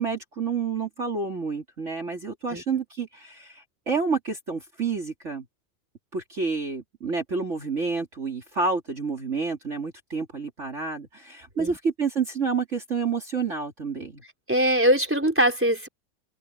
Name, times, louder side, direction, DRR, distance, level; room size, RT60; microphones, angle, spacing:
voice 1, 0.0-5.4 6.1-14.2, right 5 dB, 40° right, 3.0 m, -29 dB
voice 2, 14.5-15.9, equal, 5° right, 4.4 m, -22 dB
open air
omnidirectional pair, 1.9 m